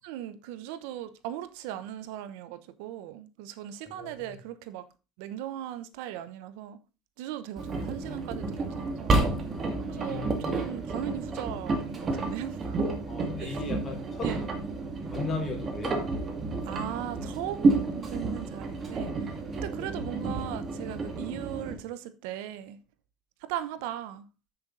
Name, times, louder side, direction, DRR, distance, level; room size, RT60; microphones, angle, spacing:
voice 1, 0.0-4.9 5.2-6.8 7.2-9.2 9.9-13.6 14.2-14.4 16.6-22.8 23.4-24.2, right 12 dB, 85° right, 0.8 m, -38 dB
voice 2, 3.9-4.3 9.9-10.6 13.1-14.3 15.1-16.0 19.8-19.9, left 4 dB, 35° left, 3.4 m, -36 dB
Engine, 7.6-21.7, right 3 dB, 35° right, 2.0 m, -30 dB
7.6 x 6.9 x 3.9 m
supercardioid pair, 110°, 0 cm